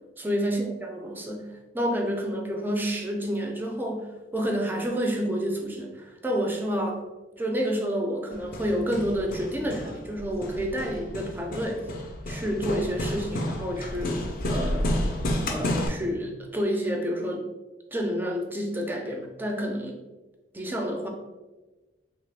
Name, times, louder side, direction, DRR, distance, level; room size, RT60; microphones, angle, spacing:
voice 1, 0.2-7.0 7.4-11.9 12.3-14.8 15.5-17.4 17.9-20.0 20.5-21.1, equal, 10° right, 1 dB, 0.4 m, -29 dB
Hammer, 8.3-15.9, left 1 dB, 50° left, 0.4 m, -31 dB
2.9 x 2.3 x 3.3 m, 1.1 s
head